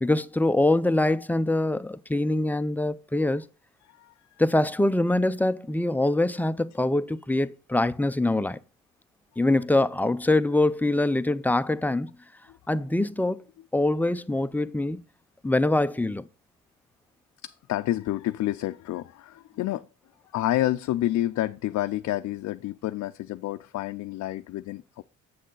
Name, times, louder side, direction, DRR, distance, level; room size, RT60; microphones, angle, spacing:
voice 1, 0.0-3.4 4.4-8.6 9.4-12.1 12.7-13.4 13.7-15.0 15.4-16.3, left 2 dB, 5° left, 0.4 m, -24 dB
voice 2, 17.4-19.9 20.3-25.0, left 14 dB, 65° left, 0.4 m, -29 dB
7.7 x 6.4 x 3.8 m
cardioid pair, 90°, 30 cm